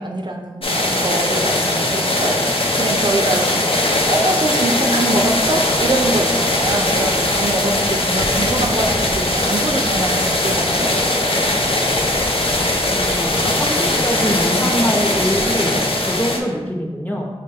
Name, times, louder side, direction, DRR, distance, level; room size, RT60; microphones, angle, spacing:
voice 1, 0.0-2.4 2.7-10.9, right 2 dB, 45° right, 2 dB, 0.4 m, -24 dB
sound 1, 0.6-16.4, left 1 dB, 60° left, 0.5 m, -19 dB
voice 2, 12.9-17.3, equal, 15° left, 0 dB, 0.6 m, -23 dB
5.4 x 2.2 x 3.4 m, 1.2 s
wide cardioid pair, 45°, 10 cm